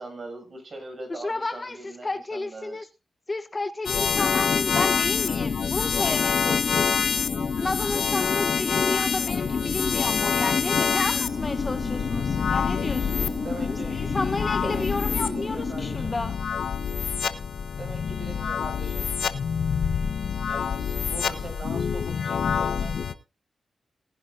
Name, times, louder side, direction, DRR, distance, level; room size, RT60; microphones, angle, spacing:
voice 1, 0.0-2.8 13.4-14.1 14.6-14.9 15.2-16.1 17.8-19.1 19.8-20.2 20.4-22.9, right 2 dB, 55° right, 6.5 m, -41 dB
voice 2, 1.1-2.8 3.3-7.2 7.6-13.3 13.7-16.4, left 2 dB, 35° left, 1.0 m, -32 dB
sound 1, 3.9-23.1, left 6 dB, 80° left, 0.9 m, -27 dB
sound 2, 4.1-16.0, left 4 dB, 60° left, 1.5 m, -31 dB
sound 3, 8.9-16.6, right 4 dB, 75° right, 4.8 m, -46 dB
19.0 x 10.0 x 2.6 m
cardioid pair, 55°, 0 cm